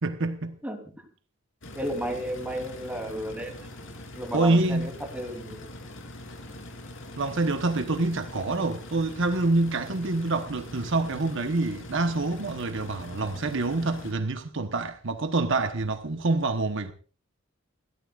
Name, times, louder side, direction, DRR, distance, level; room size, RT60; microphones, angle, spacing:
voice 1, 0.0-0.5 4.3-4.9 7.1-16.9, right 2 dB, 65° right, 1.1 m, -26 dB
voice 2, 0.6-1.1 1.7-3.7 4.1-5.7, equal, 5° right, 3.2 m, -33 dB
sound 1, 1.6-14.1, left 1 dB, 65° left, 3.5 m, -43 dB
29.5 x 13.0 x 2.5 m
head